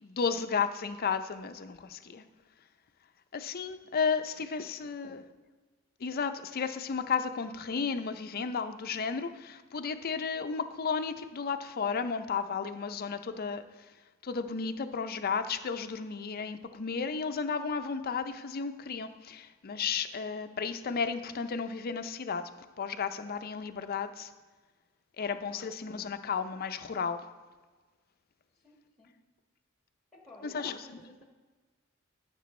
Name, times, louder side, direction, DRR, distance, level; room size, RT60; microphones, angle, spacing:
voice 1, 0.0-2.2 3.3-5.2 6.0-13.6 14.2-22.5 22.8-24.3 25.2-27.2 30.4-30.8, left 5 dB, 45° left, 9 dB, 0.5 m, -33 dB
voice 2, 4.2-5.2 25.2-25.7 28.5-29.1 30.1-31.2, left 1 dB, ahead, -1 dB, 1.3 m, -56 dB
13.5 x 6.7 x 3.2 m, 1.4 s
head